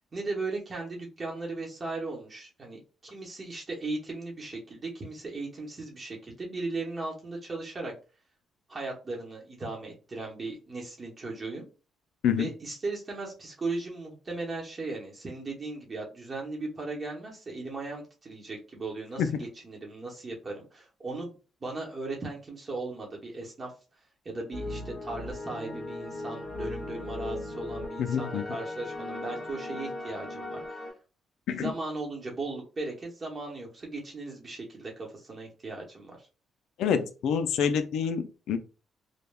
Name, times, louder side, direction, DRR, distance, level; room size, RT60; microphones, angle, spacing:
voice 1, 0.1-7.9 8.7-11.7 12.4-21.4 21.6-23.7 24.2-30.8 31.5-36.2, right 3 dB, 30° right, -1 dB, 0.9 m, -37 dB
sound 1, 24.5-30.9, left 2 dB, 25° left, 1.3 m, -37 dB
voice 2, 28.0-28.4 31.5-31.7 36.8-38.6, left 7 dB, 80° left, 10 dB, 0.3 m, -27 dB
3.2 x 2.1 x 2.2 m, 0.33 s
cardioid pair, 90°, 0 cm